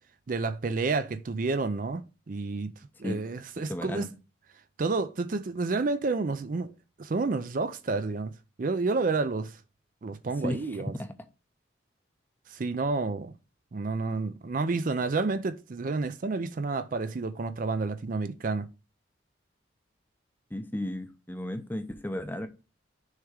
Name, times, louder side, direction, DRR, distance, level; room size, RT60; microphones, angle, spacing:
voice 1, 0.3-2.7 3.0-4.1 4.8-6.7 7.0-8.3 8.6-9.6 10.0-11.0 12.5-13.3 13.7-18.7, right 3 dB, 45° right, 0.4 m, -30 dB
voice 2, 3.7-4.1 10.4-11.1 20.5-22.5, left 1 dB, 10° left, 0.6 m, -34 dB
6.4 x 3.5 x 4.9 m
head